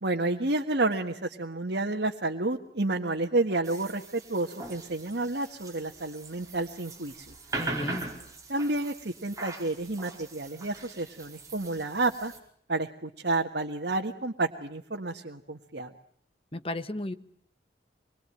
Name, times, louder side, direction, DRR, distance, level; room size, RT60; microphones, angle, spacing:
voice 1, 0.0-7.3 8.5-12.3 12.7-15.9, right 2 dB, 75° right, 1 dB, 1.7 m, -30 dB
sound 1, 3.6-12.4, right 2 dB, 20° right, 5.0 m, -41 dB
voice 2, 7.6-8.1 16.5-17.1, left 1 dB, 30° left, 10 dB, 1.4 m, -34 dB
26.5 x 22.5 x 9.0 m, 0.64 s
head